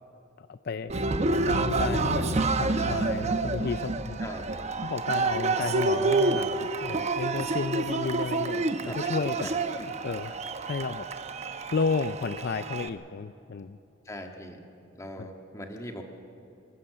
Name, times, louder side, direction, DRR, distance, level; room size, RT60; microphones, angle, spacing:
voice 1, 0.4-0.9 1.3-4.2 4.8-9.5 10.0-10.3 10.6-11.1 11.7-13.8 15.2-15.3, left 4 dB, 55° left, 12 dB, 0.4 m, -32 dB
Cheering, 0.9-12.9, right 3 dB, 35° right, 0.8 m, -28 dB
voice 2, 4.2-4.7 8.8-9.0 9.4-9.7 14.1-14.6 14.9-16.0, left 1 dB, 15° left, 3 dB, 1.7 m, -40 dB
26.0 x 13.0 x 7.8 m, 3.0 s
head